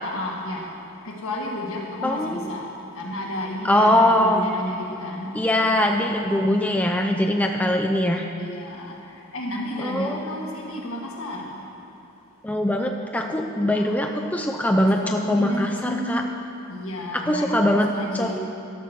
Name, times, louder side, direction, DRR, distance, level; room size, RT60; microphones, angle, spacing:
voice 1, 0.0-0.7 1.0-5.3 8.4-8.9 9.3-11.5 13.5-14.1 14.8-16.2 16.7-18.4, left 1 dB, 65° left, -1 dB, 1.6 m, -32 dB
voice 2, 2.0-2.4 3.6-4.5 5.3-8.2 9.8-10.2 12.4-16.2 17.1-18.4, left 1 dB, 5° left, 2 dB, 0.4 m, -22 dB
12.5 x 6.7 x 5.9 m, 2.7 s
head